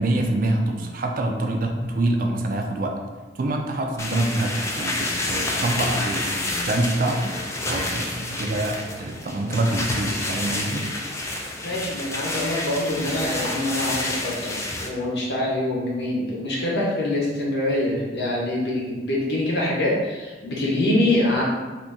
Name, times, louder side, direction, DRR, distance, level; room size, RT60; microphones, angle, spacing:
voice 1, 0.0-3.0 3.4-11.2, right 1 dB, 50° right, 3 dB, 0.4 m, -26 dB
sound 1, 4.0-14.9, left 2 dB, 15° left, 0.4 m, -29 dB
voice 2, 11.6-14.5 14.8-21.4, left 1 dB, 65° left, -5 dB, 1.0 m, -24 dB
2.7 x 2.7 x 3.5 m, 1.3 s
head